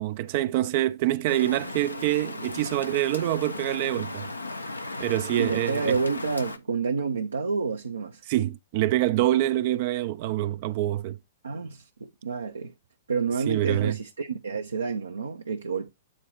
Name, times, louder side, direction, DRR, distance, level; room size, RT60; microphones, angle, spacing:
voice 1, 0.0-4.3 5.0-6.0 8.3-11.2 13.5-14.0, right 14 dB, 45° right, 0.5 m, -26 dB
Rain, 1.3-6.6, left 2 dB, 85° left, 0.8 m, -36 dB
voice 2, 5.4-8.2 11.4-12.7 13.1-15.9, right 5 dB, 75° right, 0.8 m, -29 dB
8.7 x 3.8 x 4.6 m
figure-of-eight pair, 110°, 0 cm